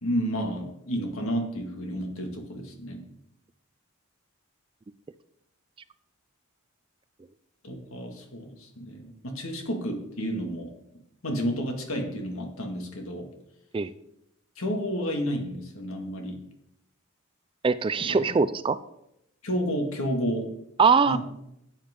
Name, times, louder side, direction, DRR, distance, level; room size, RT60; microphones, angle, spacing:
voice 1, 0.0-3.0 7.6-10.7 11.2-13.3 14.6-16.4 18.0-18.2 19.4-20.5 21.1-21.2, equal, 70° left, 3 dB, 2.0 m, -31 dB
voice 2, 17.6-18.8 20.8-21.2, right 5 dB, 25° right, 15 dB, 0.3 m, -22 dB
13.0 x 9.1 x 3.7 m, 0.80 s
head